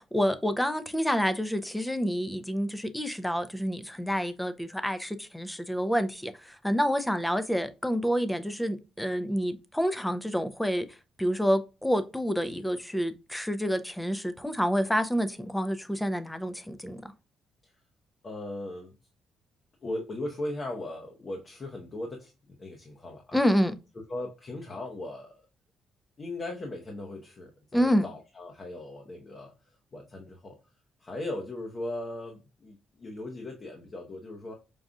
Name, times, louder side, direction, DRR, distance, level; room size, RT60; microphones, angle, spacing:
voice 1, 0.0-10.9 11.2-17.1 23.3-23.8 27.7-28.1, equal, 5° left, 0.5 m, -28 dB
voice 2, 18.2-19.0 19.8-23.4 23.9-25.3 26.2-29.5 29.9-30.6 31.0-34.5, left 1 dB, 40° left, 0.9 m, -38 dB
5.3 x 2.4 x 2.4 m
cardioid pair, 90°, 0 cm